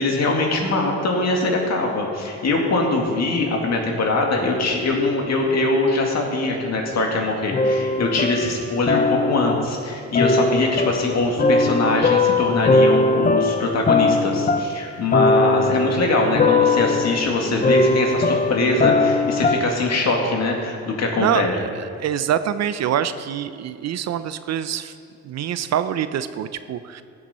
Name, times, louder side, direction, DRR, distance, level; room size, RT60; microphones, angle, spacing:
voice 1, 0.0-21.5, left 2 dB, 60° left, 1 dB, 2.1 m, -22 dB
sound 1, 7.5-9.8 10.1-19.9, left 3 dB, 25° left, 0.6 m, -20 dB
voice 2, 21.2-24.9 25.2-27.0, right 9 dB, 60° right, 13 dB, 0.6 m, -25 dB
16.0 x 7.4 x 4.3 m, 2.5 s
cardioid pair, 90°, 30 cm